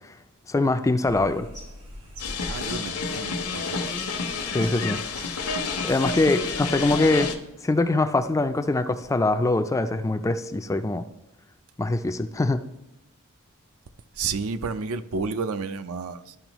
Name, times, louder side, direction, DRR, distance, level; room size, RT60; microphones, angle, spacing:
voice 1, 0.5-1.5 4.4-5.0 5.3-5.6 5.8-7.3 7.6-11.0 11.8-12.6, left 2 dB, 15° left, 0.3 m, -23 dB
sound 1, 1.0-7.4, equal, 80° right, 1.9 m, -45 dB
sound 2, 2.2-7.4, left 4 dB, 85° left, 0.9 m, -29 dB
voice 2, 2.5-4.0 14.2-16.4, right 4 dB, 65° right, 0.5 m, -31 dB
12.5 x 5.3 x 3.0 m
head